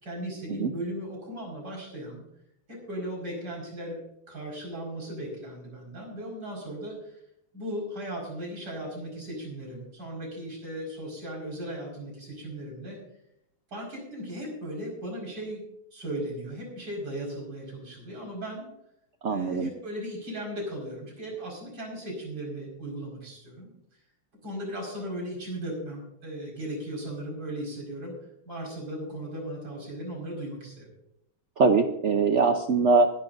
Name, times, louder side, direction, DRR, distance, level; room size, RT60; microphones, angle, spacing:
voice 1, 0.0-2.2 2.7-4.0 4.3-7.2 7.5-13.0 13.7-15.6 15.9-18.7 19.3-23.7 24.4-28.1 28.5-30.9, right 1 dB, 50° right, -1 dB, 5.8 m, -37 dB
voice 2, 19.2-19.7 31.6-33.1, right 4 dB, 70° right, 6 dB, 0.6 m, -22 dB
22.5 x 11.5 x 2.6 m, 0.79 s
omnidirectional pair, 2.2 m